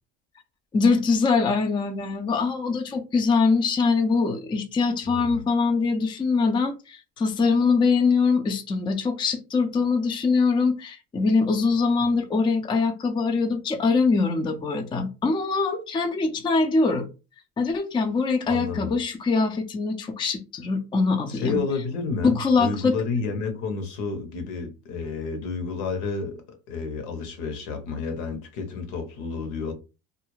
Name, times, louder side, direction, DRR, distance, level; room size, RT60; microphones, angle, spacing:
voice 1, 0.7-17.1 17.6-21.6 22.2-23.0, left 4 dB, 15° left, 0.4 m, -23 dB
voice 2, 5.0-5.4 18.5-18.9 21.3-29.7, left 4 dB, 75° left, 1.0 m, -30 dB
2.4 x 2.1 x 3.1 m
supercardioid pair, 95°, 37 cm